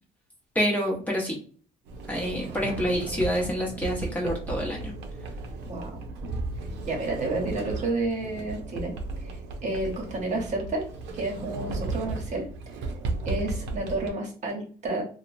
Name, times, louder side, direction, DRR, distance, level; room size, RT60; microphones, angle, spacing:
voice 1, 0.5-1.4 2.1-4.9, equal, 10° left, -2 dB, 0.8 m, -27 dB
Sliding door, 1.9-14.1, right 3 dB, 85° right, 0.6 m, -35 dB
voice 2, 5.7-6.0 6.8-8.9 9.2-10.9 11.1-12.5 13.3-15.1, right 2 dB, 45° right, 0 dB, 1.0 m, -30 dB
2.8 x 2.1 x 2.5 m, 0.43 s
cardioid pair, 110°, 17 cm